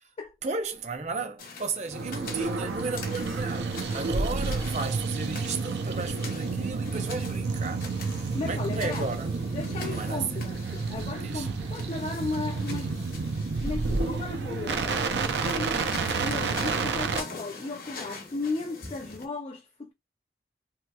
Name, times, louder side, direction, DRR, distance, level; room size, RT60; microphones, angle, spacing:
voice 1, 0.4-7.9 8.4-9.3 9.8-10.5 11.1-11.5, right 4 dB, 40° right, 0.6 m, -34 dB
sound 1, 1.4-19.2, left 4 dB, 55° left, 0.8 m, -44 dB
sound 2, 1.9-17.2, right 4 dB, 80° right, 0.5 m, -30 dB
voice 2, 8.3-9.1 9.5-13.3 13.6-15.8 16.2-19.9, left 3 dB, 35° left, 0.3 m, -35 dB
2.8 x 2.8 x 2.2 m
head